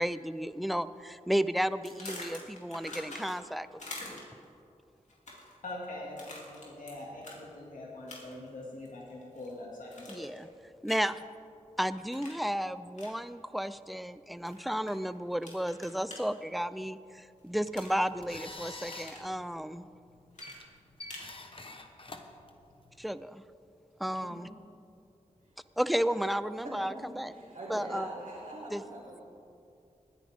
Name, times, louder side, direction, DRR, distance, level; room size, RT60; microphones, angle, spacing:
voice 1, 0.0-4.0 10.1-10.5 10.8-11.1 11.8-19.9 23.0-23.4 24.0-24.5 25.8-27.3 27.7-28.1 28.7-28.8, equal, ahead, 14 dB, 0.5 m, -33 dB
sound 1, 1.8-3.5 3.8-4.4 5.1-5.6 6.2-6.9 7.2-7.4 8.1-8.5 8.9-9.5 9.9-10.4 10.9-11.2 12.1-12.4 12.9-13.1 14.5-14.9 15.4-16.2 17.7-18.4 18.7-19.3 20.3-21.3, left 2 dB, 65° left, 2.9 m, -45 dB
voice 2, 5.6-10.5, left 1 dB, 85° left, -3 dB, 2.3 m, -43 dB
sound 2, 17.4-23.1, left 2 dB, 40° left, 1.2 m, -48 dB
voice 3, 26.6-29.2, right 1 dB, 75° right, -9 dB, 3.3 m, -43 dB
20.0 x 10.0 x 3.6 m, 2.5 s
cardioid pair, 55°, 13 cm